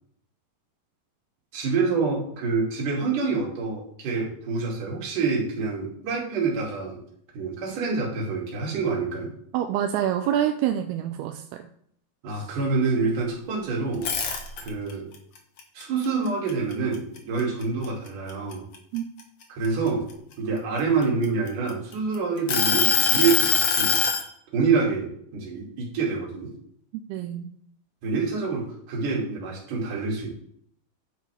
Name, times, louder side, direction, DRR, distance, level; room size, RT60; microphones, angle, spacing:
voice 1, 1.5-7.0 7.3-9.3 12.2-14.1 14.6-15.1 15.7-18.6 19.5-20.1 20.4-24.0 24.5-26.5 28.0-30.3, right 4 dB, 55° right, -2 dB, 3.7 m, -27 dB
voice 2, 9.5-11.7 18.9-19.0 27.1-27.5, right 10 dB, 80° right, 6 dB, 2.4 m, -26 dB
sound 1, 13.9-14.9 15.4-17.2 17.6-17.9 18.3-20.1 20.8-21.9 22.5-24.2, left 6 dB, 85° left, 1.3 m, -23 dB
10.5 x 8.3 x 3.4 m, 0.66 s
omnidirectional pair, 4.9 m